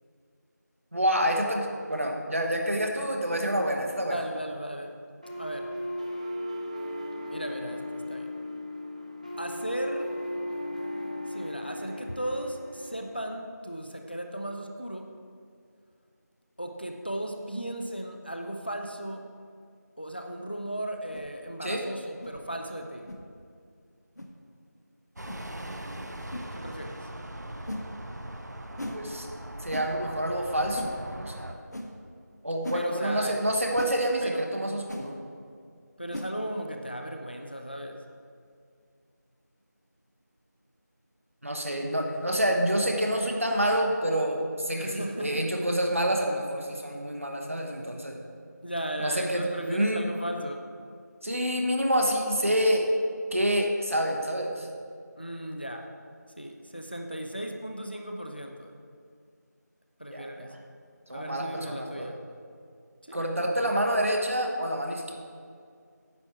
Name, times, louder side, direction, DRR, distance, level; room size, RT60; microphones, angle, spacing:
voice 1, 0.9-4.2 21.6-21.8 28.9-29.3 29.6-31.6 32.4-35.2 41.4-48.2 49.0-50.0 51.2-52.9 53.3-54.7 60.1-60.5 61.1-62.1 63.1-65.1, equal, 45° right, 2 dB, 1.1 m, -28 dB
voice 2, 4.1-5.7 7.3-8.3 9.4-10.1 11.3-15.1 16.6-19.2 20.0-23.1 26.5-27.1 32.7-33.4 34.2-34.4 36.0-38.0 44.7-45.5 48.6-50.6 55.2-55.9 56.4-58.7 60.0-60.6 61.1-62.2 63.0-63.3, right 1 dB, 35° left, 4 dB, 0.5 m, -36 dB
sound 1, 5.2-13.2, left 1 dB, 25° right, 0.6 m, -36 dB
sound 2, 21.1-21.3 22.2-22.4 23.1-23.2 24.2-24.3 25.3-25.4 26.3-26.5 27.7-27.9 28.8-29.0 29.7-29.9 30.8-30.9 31.7-31.9 32.6-32.8 33.8-34.0 34.9-35.1 36.1-36.3, left 1 dB, 65° left, 1.2 m, -37 dB
sound 3, 25.2-31.5, right 1 dB, 70° right, 0.9 m, -40 dB
9.7 x 7.3 x 4.4 m, 2.2 s
figure-of-eight pair, 180°, 10 cm